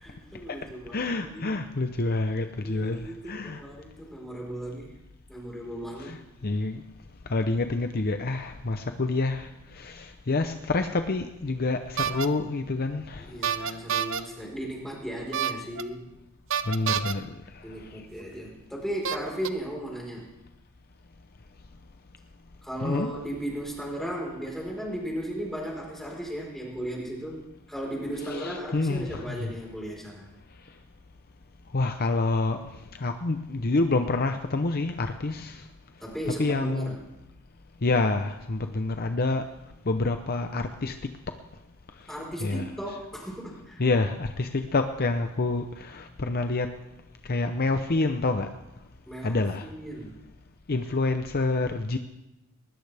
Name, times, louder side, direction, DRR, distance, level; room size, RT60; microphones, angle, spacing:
voice 1, 0.0-1.5 2.6-4.9 5.3-6.2 13.2-16.0 17.6-20.3 22.6-27.4 27.7-30.3 36.0-37.0 42.1-43.8 49.0-50.2, right 1 dB, ahead, -3 dB, 4.4 m, -36 dB
voice 2, 0.9-3.6 6.0-6.8 7.3-13.3 16.7-17.9 22.8-23.1 28.2-29.5 31.7-32.6 33.0-35.6 36.4-36.9 37.8-39.4 39.9-41.1 42.4-42.7 43.8-46.7 47.3-48.5 49.2-49.7 50.7-52.0, left 3 dB, 45° left, 7 dB, 0.7 m, -27 dB
sound 1, 12.0-12.3 13.4-14.2 15.3-15.8 16.5-17.1 18.2-18.3 19.0-19.5, right 8 dB, 60° right, 0.7 m, -28 dB
20.0 x 20.0 x 3.5 m, 0.94 s
head